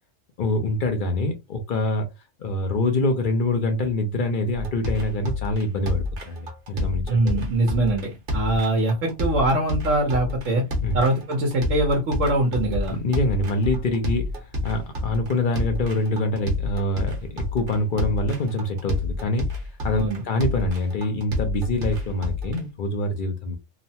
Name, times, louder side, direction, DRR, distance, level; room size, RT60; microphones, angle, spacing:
voice 1, 0.4-2.1 2.4-7.4 10.8-11.0 12.9-14.3 14.6-19.5 19.8-23.6, left 1 dB, 55° left, 0.6 m, -25 dB
sound 1, 4.5-22.6, left 2 dB, 50° right, 1.0 m, -29 dB
voice 2, 7.1-10.7 10.9-13.0 19.9-20.2, right 2 dB, 75° right, 1.2 m, -23 dB
3.0 x 2.1 x 2.7 m
omnidirectional pair, 1.3 m